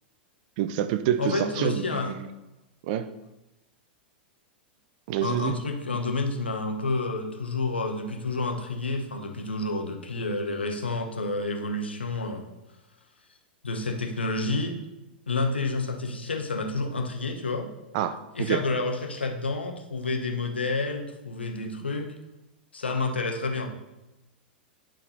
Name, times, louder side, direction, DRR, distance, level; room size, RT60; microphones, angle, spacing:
voice 1, 0.6-2.3 2.8-3.1 5.1-5.6 17.9-18.6, right 10 dB, 50° right, 13 dB, 0.5 m, -27 dB
voice 2, 1.2-2.1 5.2-12.4 13.6-14.8 15.3-17.7 18.3-22.1 22.7-23.7, left 3 dB, 80° left, 4 dB, 0.8 m, -29 dB
10.0 x 3.7 x 4.1 m, 0.97 s
figure-of-eight pair, 95°, 6 cm